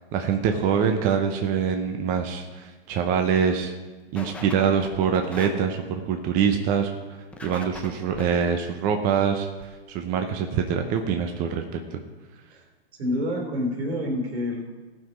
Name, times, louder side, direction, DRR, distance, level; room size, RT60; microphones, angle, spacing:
voice 1, 0.0-3.7 4.1-6.9 7.4-12.0, right 7 dB, 25° right, 5 dB, 0.7 m, -24 dB
sound 1, 2.5-2.7 3.1-3.2 3.5-3.6 4.2-4.5 4.8-5.5 7.3-8.3 9.6-9.7 10.3-10.4 10.6-10.7 10.9-11.0, left 3 dB, 5° left, 0.5 m, -40 dB
voice 2, 13.0-14.7, left 1 dB, 70° right, 2 dB, 3.4 m, -27 dB
17.0 x 5.9 x 5.3 m, 1.3 s
hypercardioid pair, 135°, 33 cm